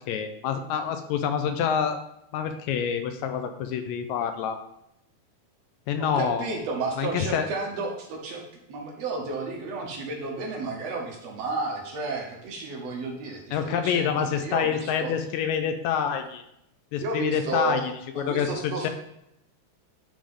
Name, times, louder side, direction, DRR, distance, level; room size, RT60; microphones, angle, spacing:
voice 1, 0.1-2.0 2.3-4.6 5.9-6.5 7.0-7.5 13.5-16.4 16.9-18.9, left 8 dB, 80° left, 7 dB, 1.8 m, -27 dB
voice 2, 6.0-8.4 8.7-15.2 17.0-18.9, right 3 dB, 65° right, 0 dB, 2.0 m, -32 dB
10.0 x 3.4 x 3.7 m, 0.80 s
omnidirectional pair, 3.4 m